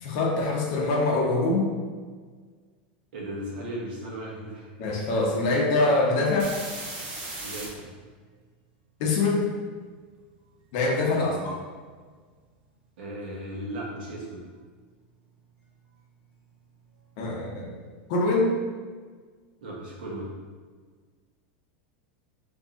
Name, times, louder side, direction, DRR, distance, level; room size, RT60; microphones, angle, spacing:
voice 1, 0.0-1.7 4.8-6.5 9.0-9.4 10.7-11.6 17.2-17.7 18.1-18.5, left 2 dB, 45° left, -1 dB, 0.8 m, -24 dB
voice 2, 3.1-4.7 7.4-7.9 11.1-11.6 13.0-14.4 19.6-20.3, right 1 dB, 70° right, -3 dB, 1.3 m, -36 dB
sound 1, 6.2-7.7 16.0-16.1 16.5-18.2, right 2 dB, 35° right, 0.9 m, -38 dB
3.6 x 3.0 x 3.8 m, 1.5 s
supercardioid pair, 180°, 5 cm